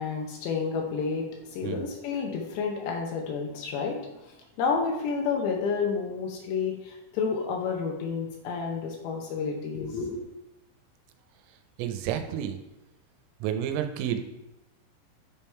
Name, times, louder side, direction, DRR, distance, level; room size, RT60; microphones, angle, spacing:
voice 1, 0.0-10.3, left 5 dB, 80° left, 1 dB, 2.5 m, -30 dB
voice 2, 11.8-12.6 13.4-14.2, right 9 dB, 85° right, 6 dB, 3.1 m, -30 dB
10.5 x 3.7 x 4.4 m, 0.94 s
omnidirectional pair, 5.9 m